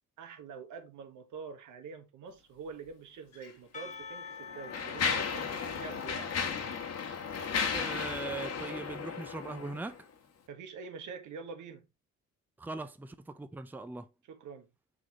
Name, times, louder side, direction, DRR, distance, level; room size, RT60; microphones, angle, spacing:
voice 1, 0.2-6.4 10.5-11.9 14.3-14.7, right 5 dB, 80° right, 1.4 m, -45 dB
Mechanisms, 3.3-3.5 4.2-10.0, left 6 dB, 55° left, 1.3 m, -35 dB
Percussion / Church bell, 3.7-8.3, left 5 dB, 25° left, 1.2 m, -48 dB
voice 2, 7.7-10.0 12.6-14.1, right 3 dB, 5° right, 0.5 m, -40 dB
6.4 x 4.9 x 3.0 m
cardioid pair, 90°, 30 cm